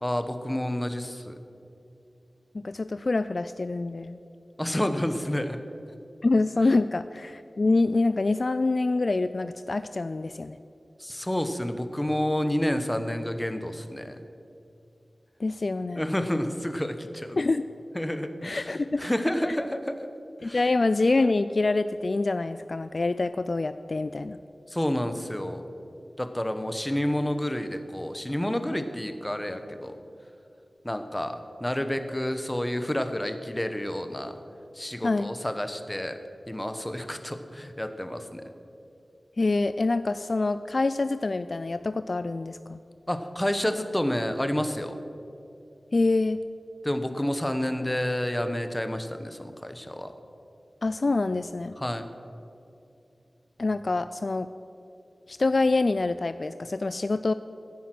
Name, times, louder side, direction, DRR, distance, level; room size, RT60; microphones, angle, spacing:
voice 1, 0.0-1.4 4.6-5.6 11.0-14.2 15.9-17.4 17.9-20.1 20.4-20.6 24.7-25.7 26.2-29.9 30.8-34.4 34.7-36.2 36.5-38.4 43.1-45.0 46.8-50.1 51.8-52.1, left 1 dB, 15° left, 8 dB, 1.0 m, -29 dB
voice 2, 2.5-4.2 6.2-10.6 15.4-16.0 17.4-17.6 18.4-19.1 20.4-24.4 35.0-35.3 39.4-42.8 45.9-46.4 50.8-51.7 53.6-54.5 55.3-57.3, left 3 dB, 55° left, 12 dB, 0.3 m, -26 dB
15.0 x 9.3 x 6.0 m, 2.7 s
wide cardioid pair, 70°, 0 cm